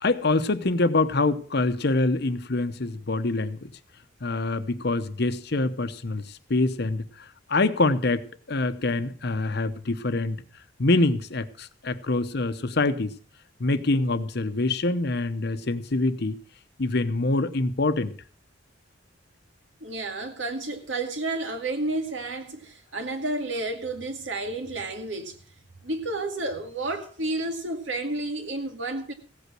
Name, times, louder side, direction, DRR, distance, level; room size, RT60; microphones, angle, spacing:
voice 1, 0.0-3.7 4.2-7.0 7.5-10.4 10.8-13.1 13.6-16.4 16.8-18.1, left 2 dB, 55° left, 0.9 m, -25 dB
voice 2, 19.8-25.4 25.8-29.1, right 2 dB, 75° right, 2.2 m, -31 dB
16.5 x 8.3 x 6.1 m
head